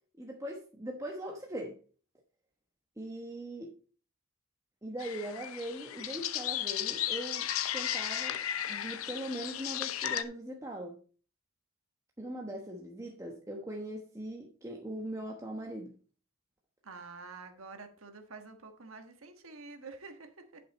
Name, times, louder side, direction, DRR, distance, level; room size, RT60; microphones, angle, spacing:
voice 1, 0.2-1.8 3.0-3.7 4.8-8.4 8.7-11.0 12.2-15.9, right 1 dB, 15° right, 1.1 m, -40 dB
sound 1, 5.0-10.2, left 10 dB, 80° left, 0.8 m, -35 dB
voice 2, 16.8-20.6, right 4 dB, 75° right, 1.4 m, -48 dB
11.0 x 6.0 x 4.1 m
head